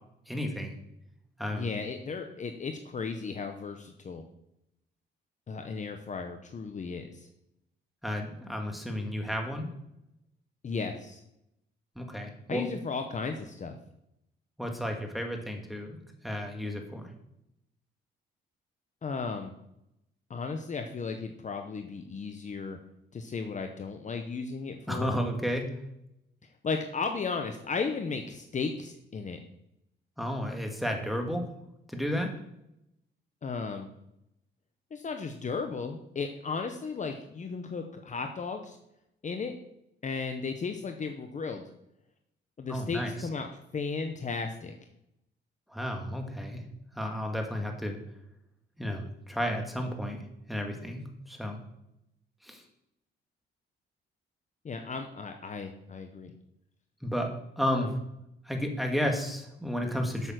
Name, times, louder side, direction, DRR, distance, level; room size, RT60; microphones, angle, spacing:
voice 1, 0.3-0.7 1.4-1.8 8.0-9.7 12.0-12.7 14.6-16.0 16.2-17.1 24.9-25.7 30.2-31.4 31.9-32.3 42.7-43.3 45.7-46.6 46.9-48.0 48.8-51.6 52.4-52.6 57.0-57.3 57.6-57.9 58.5-60.3, equal, ahead, 2 dB, 2.1 m, -32 dB
voice 2, 1.5-4.2 5.5-7.3 10.6-11.2 12.5-13.7 19.0-19.5 20.3-22.8 23.1-25.2 26.6-29.4 33.4-33.9 34.9-38.8 39.2-39.5 40.0-41.7 42.6-44.8 54.6-56.3 57.6-57.9, left 4 dB, 40° left, 5 dB, 0.9 m, -35 dB
8.0 x 7.1 x 6.3 m, 0.83 s
cardioid pair, 90°, 20 cm